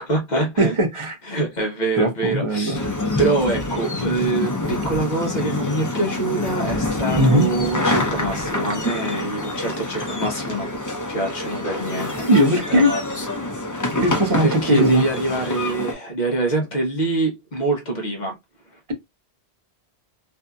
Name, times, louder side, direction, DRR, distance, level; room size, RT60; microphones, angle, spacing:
voice 1, 0.0-0.7 1.2-2.9 3.2-10.7 11.1-13.0 14.4-18.4, right 2 dB, 45° left, 0.8 m, -25 dB
voice 2, 0.6-1.2 2.0-2.8 7.2-7.5 12.2-12.9 14.0-15.0, equal, 35° right, 0.6 m, -18 dB
sound 1, 2.7-15.9, left 2 dB, 25° left, 0.4 m, -26 dB
2.6 x 2.6 x 2.2 m
omnidirectional pair, 1.1 m